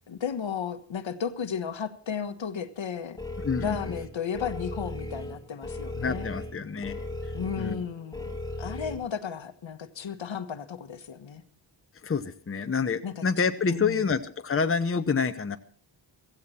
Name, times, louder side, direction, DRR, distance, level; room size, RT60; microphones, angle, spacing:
voice 1, 0.1-3.2 3.6-6.3 7.3-8.3 8.6-11.4 13.0-13.2 13.7-14.1, left 7 dB, 75° left, 10 dB, 1.4 m, -34 dB
sound 1, 3.2-8.9, left 1 dB, 10° left, 1.9 m, -37 dB
voice 2, 3.4-3.8 6.0-7.0 7.6-7.8 12.0-15.6, left 5 dB, 30° left, 8 dB, 0.9 m, -27 dB
16.0 x 15.5 x 4.3 m, 0.44 s
wide cardioid pair, 125°, 46 cm